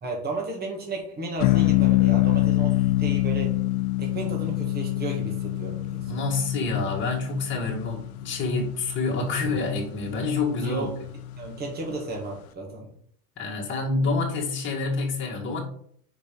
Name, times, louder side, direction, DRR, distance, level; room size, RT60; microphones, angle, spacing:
voice 1, 0.0-3.5 4.0-6.2 10.6-10.9 11.4-12.9, right 2 dB, 20° right, 0 dB, 1.8 m, -33 dB
sound 1, 1.4-11.9, left 16 dB, 75° left, 0.8 m, -26 dB
voice 2, 6.0-10.9 13.4-15.6, left 3 dB, 25° left, -3 dB, 2.0 m, -27 dB
5.2 x 5.1 x 5.2 m, 0.62 s
supercardioid pair, 140°, 45 cm